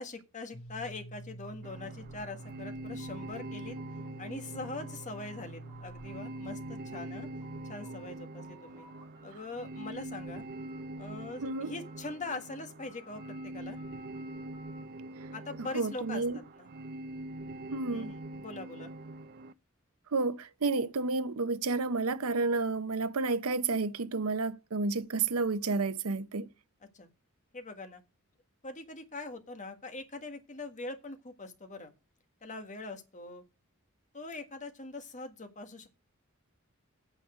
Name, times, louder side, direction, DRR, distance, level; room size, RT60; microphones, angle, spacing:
voice 1, 0.0-3.8 4.2-7.3 7.7-8.9 9.2-10.4 11.0-13.8 15.3-16.2 16.6-16.7 17.9-18.9 26.9-27.1 27.5-28.0 28.6-31.9 32.4-33.4 34.1-35.9, left 3 dB, 35° left, 1.6 m, -42 dB
sound 1, 0.5-8.0, right 2 dB, 75° left, 1.3 m, -48 dB
sound 2, 1.6-19.5, right 1 dB, 45° right, 0.5 m, -44 dB
sound 3, 3.0-5.4 5.7-6.8 7.2-8.1 8.4-9.5 9.8-10.8 11.1-12.3 12.8-14.9, right 3 dB, 20° right, 3.2 m, -58 dB
voice 2, 15.7-16.4 17.7-18.1 20.1-26.5, right 3 dB, 85° right, 0.8 m, -30 dB
9.2 x 7.1 x 6.2 m
head